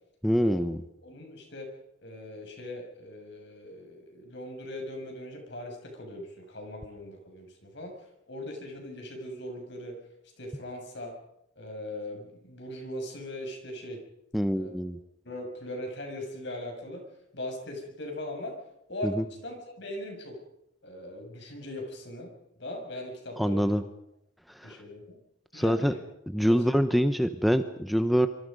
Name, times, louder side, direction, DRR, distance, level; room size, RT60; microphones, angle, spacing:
voice 1, 0.2-0.8 14.3-15.0 19.0-19.2 23.4-23.8 24.5-24.7 25.5-25.9 26.3-28.3, equal, ahead, 9 dB, 0.9 m, -25 dB
voice 2, 1.0-1.7 2.0-8.0 8.3-10.0 10.4-11.1 11.6-14.0 14.6-14.7 15.2-17.1 17.3-18.6 18.9-19.1 19.4-20.4 20.8-22.3 22.6-23.7 24.6-25.2 25.5-26.0 26.4-26.8, left 1 dB, 60° left, 3 dB, 7.0 m, -40 dB
26.5 x 25.5 x 5.4 m, 0.77 s
head